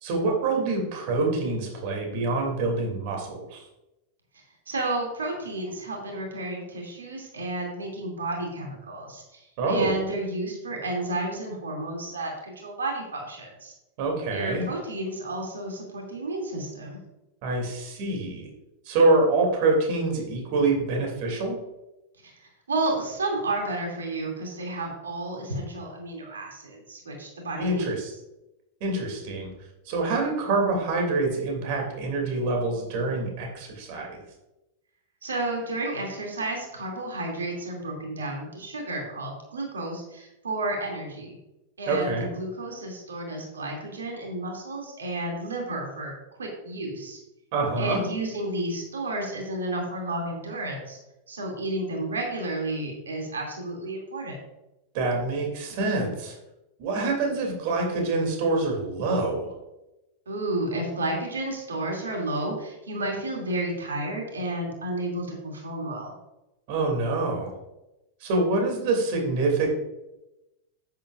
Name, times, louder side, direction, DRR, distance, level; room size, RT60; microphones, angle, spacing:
voice 1, 0.0-3.6 9.6-9.9 14.0-14.6 17.4-18.5 18.8-21.6 27.6-28.1 28.8-29.5 29.8-34.2 41.9-42.3 47.5-48.0 54.9-56.4 56.8-59.5 66.7-67.5 68.2-69.7, right 3 dB, 45° right, 1 dB, 2.8 m, -26 dB
voice 2, 4.7-13.7 14.3-17.0 22.2-27.9 35.2-41.4 41.8-46.1 46.4-47.2 47.8-51.0 51.3-54.4 60.3-66.1, right 2 dB, 70° right, 0 dB, 2.7 m, -31 dB
10.5 x 9.5 x 2.5 m, 0.94 s
figure-of-eight pair, 90°, 0 cm